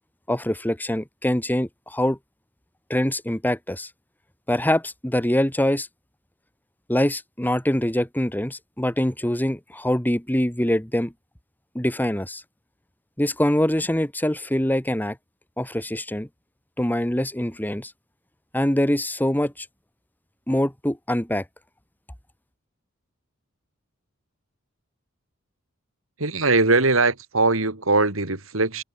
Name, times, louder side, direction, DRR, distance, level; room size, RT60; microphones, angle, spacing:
voice 1, 0.3-2.2 2.9-3.9 4.5-5.9 6.9-11.1 11.8-12.4 13.2-15.2 15.6-16.3 16.8-17.9 18.5-19.7 20.5-21.4, left 1 dB, 10° left, 1.9 m, -24 dB
voice 2, 26.2-28.8, right 3 dB, 75° right, 3.9 m, -21 dB
head